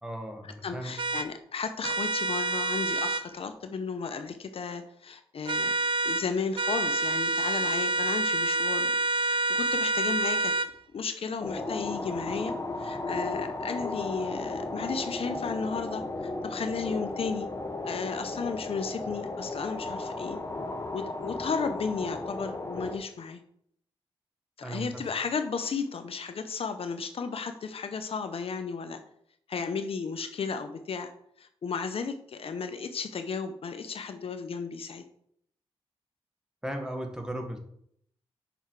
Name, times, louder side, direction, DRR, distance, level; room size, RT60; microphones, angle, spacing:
voice 1, 0.0-1.0 24.6-25.1 36.6-37.6, right 1 dB, 5° right, 3 dB, 1.6 m, -36 dB
voice 2, 0.6-5.8 6.0-8.9 9.2-10.5 10.9-17.5 17.8-20.4 20.9-23.4 24.6-29.0 29.5-31.1 31.4-35.0, left 5 dB, 65° left, 8 dB, 0.8 m, -34 dB
sound 1, 1.0-1.3 1.8-3.2 5.5-6.3 6.6-10.7, right 2 dB, 50° right, 0.5 m, -27 dB
sound 2, 11.4-23.0, left 2 dB, 30° left, 1.1 m, -35 dB
7.2 x 5.6 x 4.7 m, 0.69 s
cardioid pair, 80°, 11 cm